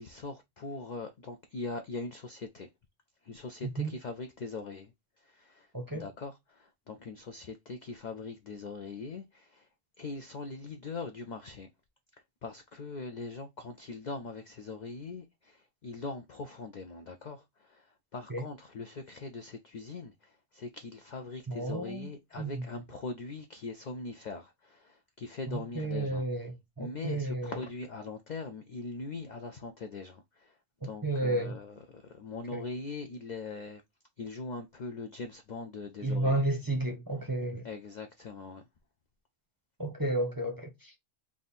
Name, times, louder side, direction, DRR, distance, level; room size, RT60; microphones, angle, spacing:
voice 1, 0.0-2.7 3.3-4.9 5.3-5.7 5.9-9.6 10.0-11.7 12.4-15.6 15.8-17.4 17.7-17.8 18.1-20.1 20.5-26.2 26.8-30.2 30.8-33.8 34.2-36.4 37.6-38.6, left 3 dB, 65° left, 0.4 m, -41 dB
voice 2, 5.7-6.1 18.3-18.5 21.5-22.1 22.4-22.6 25.5-27.6 31.0-31.6 32.5-32.6 36.0-37.6 39.8-40.9, right 2 dB, 20° right, 0.7 m, -32 dB
3.5 x 2.5 x 4.0 m
omnidirectional pair, 1.3 m